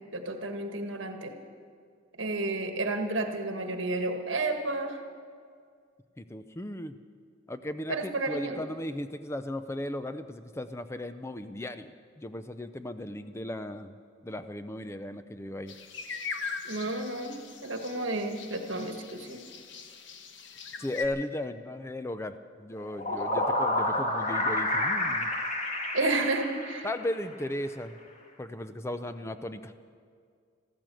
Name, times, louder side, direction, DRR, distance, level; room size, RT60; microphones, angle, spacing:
voice 1, 0.1-1.3 2.2-5.0 7.9-8.7 16.6-17.3 17.6-19.4 23.1-23.2 25.9-26.9, right 2 dB, 75° right, 5 dB, 1.5 m, -31 dB
voice 2, 6.2-6.9 7.5-13.9 14.2-15.7 20.8-25.3 26.8-28.0 28.4-29.7, left 1 dB, 15° left, 10 dB, 0.5 m, -36 dB
sound 1, 15.7-21.1, left 5 dB, 65° left, 1.1 m, -41 dB
sound 2, 22.7-27.2, left 1 dB, 35° left, 1.9 m, -29 dB
14.0 x 13.5 x 7.7 m, 2.1 s
head